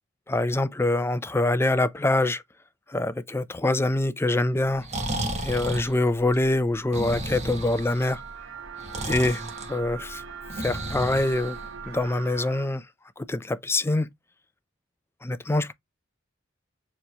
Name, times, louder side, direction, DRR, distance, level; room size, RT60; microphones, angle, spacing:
voice 1, 0.3-2.4 2.9-4.9 5.4-8.2 9.0-9.4 9.7-10.2 10.6-11.6 11.9-12.8 13.2-14.1 15.2-15.7, left 2 dB, 15° left, 0.4 m, -24 dB
Breathing, 4.7-12.0, right 1 dB, 35° right, 1.2 m, -34 dB
sound 1, 6.9-12.7, right 6 dB, 75° right, 0.7 m, -41 dB
6.9 x 3.1 x 2.3 m
head